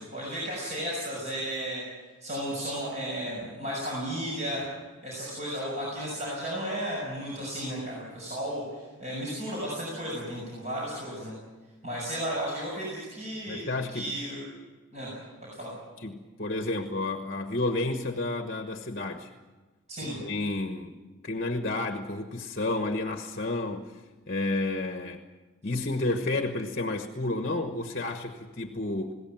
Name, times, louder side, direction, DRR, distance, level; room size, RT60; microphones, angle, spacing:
voice 1, 0.0-1.8 2.2-4.7 5.0-11.3 11.8-14.4 14.9-15.1 15.4-15.7 19.9-20.2, equal, 30° right, -4 dB, 6.2 m, -34 dB
voice 2, 13.5-14.1 16.0-19.3 20.2-21.0 21.2-24.0 24.3-25.2 25.6-29.1, left 2 dB, 40° left, 6 dB, 1.2 m, -31 dB
20.5 x 17.0 x 9.0 m, 1.3 s
head